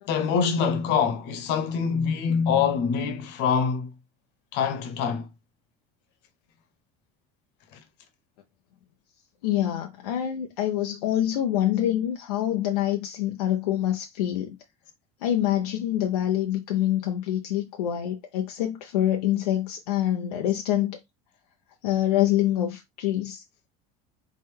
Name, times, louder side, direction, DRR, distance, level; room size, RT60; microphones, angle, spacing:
voice 1, 0.1-3.9 4.5-5.3 7.7-7.8, left 6 dB, 65° left, 1.2 m, -25 dB
voice 2, 9.4-14.6 15.2-21.0 21.8-23.4, left 12 dB, 85° left, 0.7 m, -26 dB
4.1 x 3.7 x 3.3 m
hypercardioid pair, 85°, 19 cm